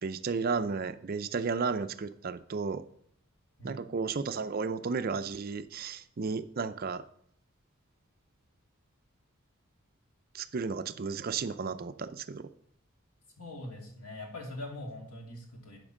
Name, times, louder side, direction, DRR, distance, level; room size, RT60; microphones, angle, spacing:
voice 1, 0.0-2.8 3.6-7.0 10.3-12.5, right 5 dB, 45° right, 11 dB, 0.5 m, -33 dB
voice 2, 3.6-3.9 13.4-15.8, left 1 dB, 90° left, 1 dB, 2.5 m, -42 dB
11.0 x 5.1 x 6.3 m, 0.66 s
head